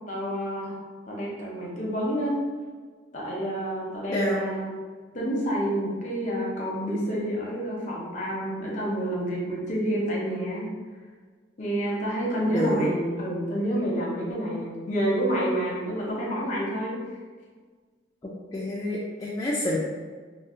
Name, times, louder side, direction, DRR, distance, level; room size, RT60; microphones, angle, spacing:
voice 1, 0.1-0.7 1.1-2.3 3.1-4.7 5.1-10.7 11.6-17.0, equal, 40° left, -4 dB, 0.8 m, -28 dB
voice 2, 4.1-4.4 12.5-12.9 18.5-19.8, left 1 dB, 20° left, -6 dB, 0.3 m, -27 dB
2.6 x 2.0 x 3.7 m, 1.5 s
head